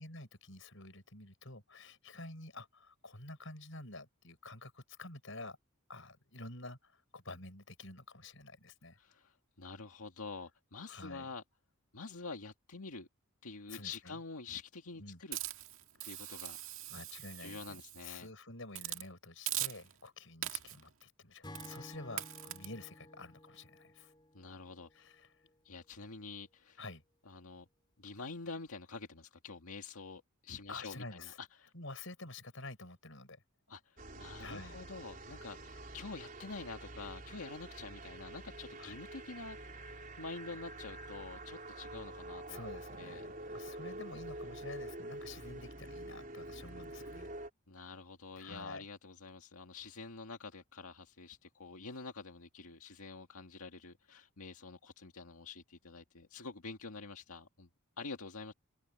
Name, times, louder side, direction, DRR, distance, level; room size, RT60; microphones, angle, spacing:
voice 1, 0.0-5.6 5.9-9.0 10.9-11.3 13.7-14.1 15.0-15.2 16.0-16.1 16.9-24.1 24.9-25.3 26.8-27.0 30.7-31.4 31.7-33.4 34.2-34.8 38.8-39.0 42.5-47.3 48.4-48.8, left 2 dB, 60° left, 7.7 m, -49 dB
voice 2, 9.0-11.4 11.9-13.1 13.4-15.4 16.0-16.6 17.4-18.3 24.3-25.1 25.6-26.8 27.3-27.7 28.0-31.7 33.7-42.6 43.0-43.3 47.7-57.7 58.0-58.5, left 4 dB, 85° left, 1.9 m, -47 dB
Hiss, 15.3-18.2 18.7-19.1 19.5-20.1 20.4-20.9 21.5-21.8 22.2-22.7, right 14 dB, 65° right, 2.0 m, -41 dB
Acoustic guitar / Strum, 21.4-24.9, left 1 dB, 20° left, 4.3 m, -53 dB
sound 1, 34.0-47.5, right 1 dB, 40° right, 4.3 m, -47 dB
head